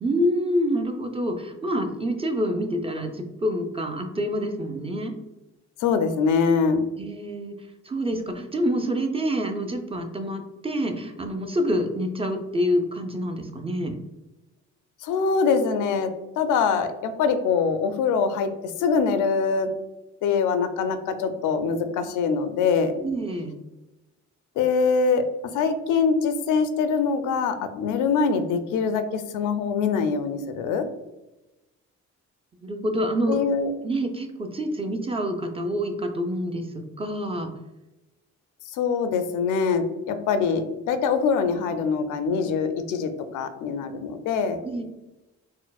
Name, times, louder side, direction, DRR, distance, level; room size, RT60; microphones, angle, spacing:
voice 1, 0.0-5.1 7.0-7.5 7.8-14.0 23.0-23.5 32.6-33.4 33.8-37.5 44.6-44.8, equal, 20° right, 5 dB, 0.4 m, -27 dB
voice 2, 5.8-6.8 15.0-16.1 16.4-18.5 18.8-19.7 20.2-22.9 24.6-30.8 33.3-33.7 38.7-44.6, left 5 dB, 85° left, 9 dB, 0.5 m, -23 dB
4.3 x 2.0 x 2.3 m, 1.0 s
cardioid pair, 90°, 30 cm